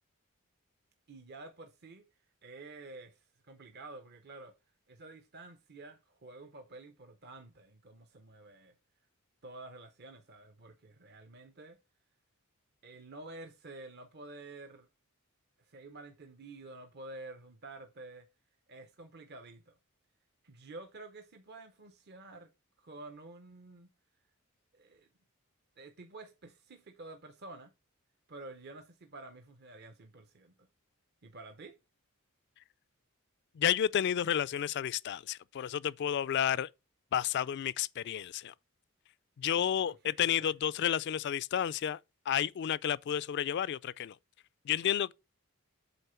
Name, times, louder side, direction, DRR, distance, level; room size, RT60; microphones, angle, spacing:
voice 1, 1.1-2.1 2.4-4.5 4.9-8.7 9.4-11.8 12.8-14.9 15.7-18.3 18.7-19.7 20.4-22.5 22.8-23.9 24.7-25.1 25.8-27.7 28.3-30.7 31.2-31.8 39.8-40.5, right 2 dB, 50° right, 0.8 m, -50 dB
voice 2, 33.6-36.7 37.1-38.5 39.4-42.0 42.3-44.2 44.7-45.1, left 9 dB, 50° left, 0.3 m, -31 dB
8.1 x 3.7 x 5.6 m
head